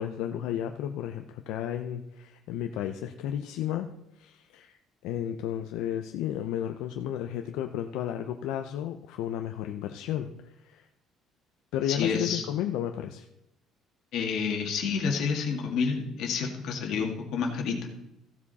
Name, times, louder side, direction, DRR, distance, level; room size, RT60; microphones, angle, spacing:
voice 1, 0.0-3.9 4.1-10.9 11.7-13.3, left 10 dB, 80° left, 6 dB, 0.6 m, -33 dB
voice 2, 11.9-12.4 14.1-17.9, left 5 dB, 55° left, 1 dB, 2.1 m, -29 dB
15.0 x 7.2 x 4.2 m, 0.86 s
cardioid pair, 180°, 0 cm